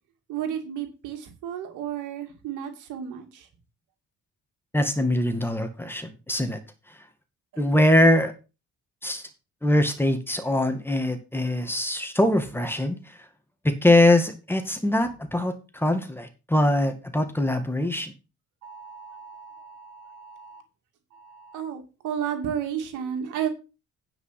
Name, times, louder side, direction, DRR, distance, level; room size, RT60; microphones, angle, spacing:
voice 1, 0.3-3.5 18.6-20.6 21.1-23.5, right 9 dB, 90° right, 5 dB, 2.4 m, -33 dB
voice 2, 4.7-6.6 6.9-7.0 7.6-8.3 9.0-9.3 9.6-13.3 13.6-18.1, left 1 dB, 5° left, 7 dB, 2.0 m, -23 dB
9.7 x 5.4 x 6.0 m, 0.30 s
cardioid pair, 90°, 30 cm